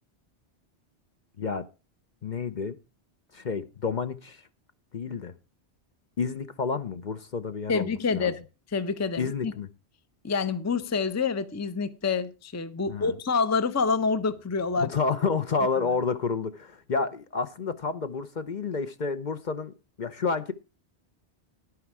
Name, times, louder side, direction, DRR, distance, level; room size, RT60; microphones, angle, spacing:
voice 1, 2.2-2.7 3.3-4.4 4.9-5.3 6.2-8.3 9.2-9.7 12.9-13.1 14.8-20.5, left 5 dB, 45° left, 0.8 m, -30 dB
voice 2, 7.7-8.4 8.7-9.5 10.2-14.9, left 5 dB, 20° left, 0.6 m, -27 dB
11.0 x 9.5 x 4.7 m
omnidirectional pair, 1.1 m